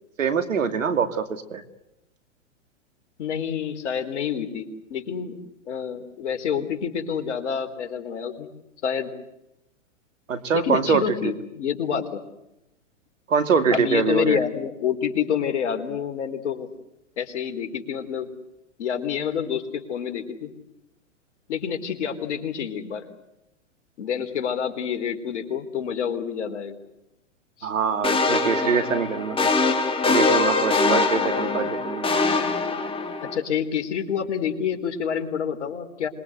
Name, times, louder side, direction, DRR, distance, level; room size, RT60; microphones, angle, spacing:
voice 1, 0.2-1.6 10.3-11.0 13.3-14.4 27.6-29.5 30.1-32.1, right 6 dB, 85° right, 10 dB, 2.6 m, -24 dB
voice 2, 3.2-5.4 5.7-8.5 8.8-9.1 10.5-12.2 13.7-16.7 17.2-18.3 18.8-20.5 21.5-23.1 24.0-26.8 27.6-27.7 33.2-36.1, left 8 dB, 65° left, 6 dB, 4.1 m, -28 dB
sound 1, 28.0-33.4, left 3 dB, 15° left, 3.2 m, -23 dB
26.5 x 22.0 x 8.0 m, 0.89 s
hypercardioid pair, 120°, 38 cm